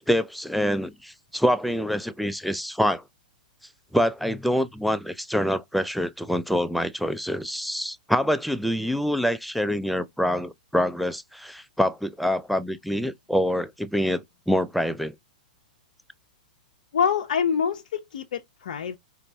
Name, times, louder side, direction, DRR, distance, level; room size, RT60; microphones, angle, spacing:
voice 1, 0.1-3.0 3.9-15.1, equal, ahead, 0.3 m, -26 dB
voice 2, 16.9-19.0, left 7 dB, 70° left, 0.5 m, -25 dB
4.0 x 2.1 x 2.6 m
hypercardioid pair, 115°, 4 cm